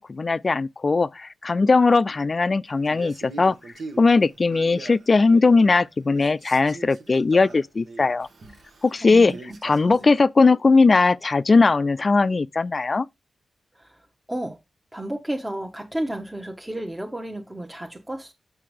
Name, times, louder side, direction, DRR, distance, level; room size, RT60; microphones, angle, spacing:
voice 1, 0.0-3.6 4.0-8.3 8.8-9.4 9.6-13.1, left 3 dB, 45° left, 0.4 m, -19 dB
Male speech man speaking, 2.8-5.8 6.1-10.2, right 3 dB, 70° right, 1.2 m, -42 dB
voice 2, 9.0-9.4 9.9-10.0 13.7-14.6 14.9-18.3, right 1 dB, 15° right, 1.0 m, -32 dB
6.0 x 5.8 x 3.2 m
cardioid pair, 50°, 0 cm